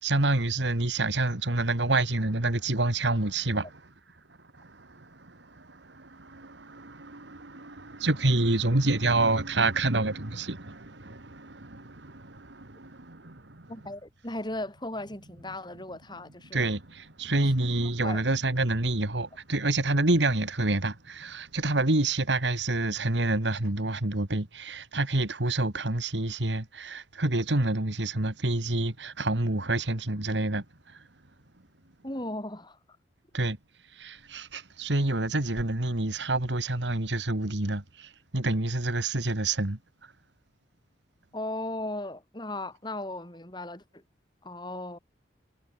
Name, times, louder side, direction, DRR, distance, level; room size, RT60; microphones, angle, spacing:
voice 1, 0.0-3.9 4.3-13.7 16.5-31.1 33.3-33.6 33.9-40.1, right 2 dB, 90° right, 2.4 m, -28 dB
voice 2, 13.7-16.7 18.0-18.2 32.0-32.8 41.3-44.0 44.4-45.0, left 1 dB, 25° left, 5.2 m, -36 dB
head